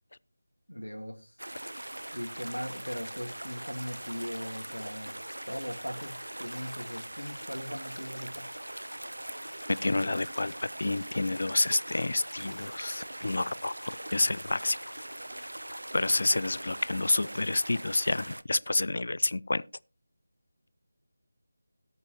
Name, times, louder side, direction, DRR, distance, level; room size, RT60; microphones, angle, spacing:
voice 1, 0.7-1.4 2.1-5.2 5.5-8.5, equal, 85° left, 1.8 m, -39 dB
sound 1, 1.4-18.4, right 1 dB, 70° right, 0.7 m, -41 dB
voice 2, 9.8-10.5 10.8-14.8 15.9-19.6, left 2 dB, 50° left, 0.5 m, -29 dB
18.0 x 8.1 x 3.0 m
figure-of-eight pair, 160°, 0 cm